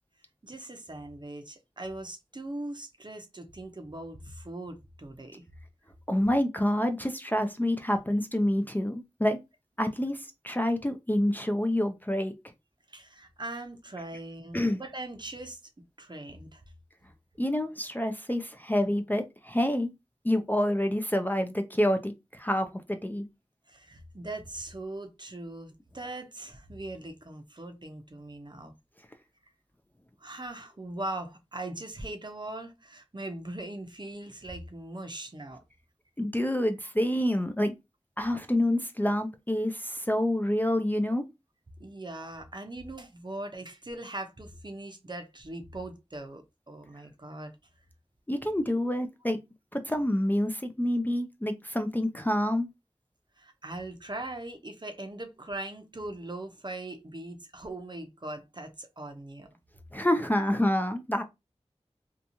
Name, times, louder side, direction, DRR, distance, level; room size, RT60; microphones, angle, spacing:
voice 1, 0.4-5.4 12.9-15.6 16.0-16.6 23.7-28.7 30.2-35.6 41.8-47.5 53.4-59.5 60.3-60.4, right 2 dB, 40° right, 0.6 m, -40 dB
voice 2, 6.1-9.4 9.8-12.3 14.5-14.8 17.4-19.9 20.2-23.2 36.2-37.7 38.2-41.2 48.3-49.4 49.7-52.7 59.9-61.2, left 1 dB, 15° left, 0.4 m, -27 dB
2.8 x 2.3 x 2.6 m
wide cardioid pair, 45°, 12 cm